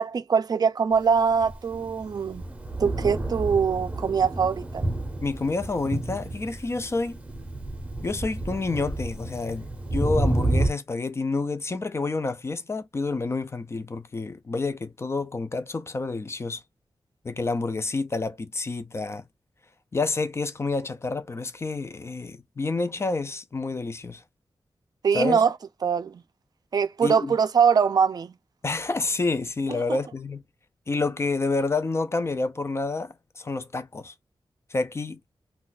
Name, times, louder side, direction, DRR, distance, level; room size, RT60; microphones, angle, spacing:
voice 1, 0.0-2.4 2.8-4.8 25.0-25.5 25.8-26.2 26.7-28.3 29.9-30.0, right 6 dB, 45° right, 0.4 m, -22 dB
Thunder, 1.2-10.7, right 2 dB, 15° right, 0.7 m, -30 dB
voice 2, 5.2-7.2 8.0-9.7 9.9-16.6 17.2-19.2 19.9-24.2 25.1-25.4 27.0-27.4 28.6-30.4 30.9-34.1 34.7-35.2, left 3 dB, 30° left, 0.3 m, -28 dB
2.4 x 2.2 x 3.9 m
wide cardioid pair, 170°, 9 cm